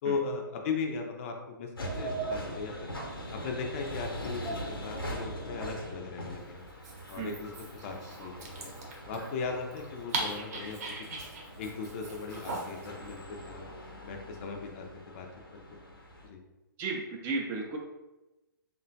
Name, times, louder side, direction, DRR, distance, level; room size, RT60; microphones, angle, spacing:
voice 1, 0.0-2.9 3.3-6.7 7.1-8.7 9.1-11.2 11.6-13.7 14.0-15.3 15.5-15.6 16.2-16.4, left 4 dB, 35° left, 2 dB, 0.5 m, -37 dB
sound 1, 1.8-16.3, right 1 dB, 85° left, 0.8 m, -41 dB
Dog, 6.7-12.9, right 3 dB, 45° right, 0.8 m, -40 dB
voice 2, 16.8-17.8, right 3 dB, 20° right, 0 dB, 0.4 m, -34 dB
3.5 x 2.2 x 2.6 m, 1.0 s
figure-of-eight pair, 120°, 12 cm